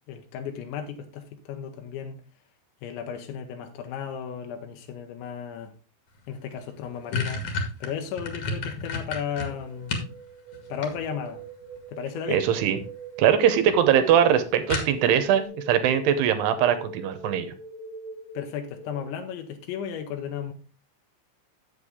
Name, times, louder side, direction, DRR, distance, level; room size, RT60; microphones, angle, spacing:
voice 1, 0.1-2.2 2.8-5.7 6.3-7.5 7.8-10.1 10.7-11.4 11.9-12.4 18.3-20.5, left 8 dB, 85° left, 3.2 m, -34 dB
sound 1, 6.3-6.4 6.7-10.1 10.5-11.4 12.5-12.9 13.3-13.4 13.7-13.8 14.1-14.2 14.7-15.3, left 3 dB, 55° left, 1.8 m, -31 dB
sound 2, 9.5-19.2, right 4 dB, 30° left, 0.5 m, -42 dB
voice 2, 12.3-12.8 13.2-17.5, right 9 dB, 75° right, 2.7 m, -21 dB
8.2 x 8.1 x 3.6 m
omnidirectional pair, 5.2 m